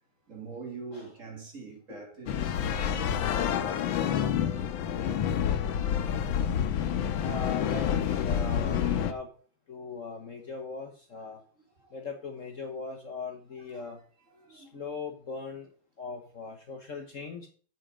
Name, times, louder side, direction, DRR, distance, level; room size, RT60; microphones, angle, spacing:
voice 1, 0.3-6.1 11.1-11.2 11.8-12.0 13.7-14.0 14.3-14.8, right 4 dB, 40° right, 2.4 m, -45 dB
sound 1, 2.3-9.1, left 9 dB, 80° left, 1.6 m, -28 dB
voice 2, 7.2-9.3 9.7-11.4 11.9-14.0 14.5-15.7 16.0-17.5, left 4 dB, 45° left, 1.3 m, -39 dB
8.5 x 7.6 x 5.0 m
omnidirectional pair, 2.1 m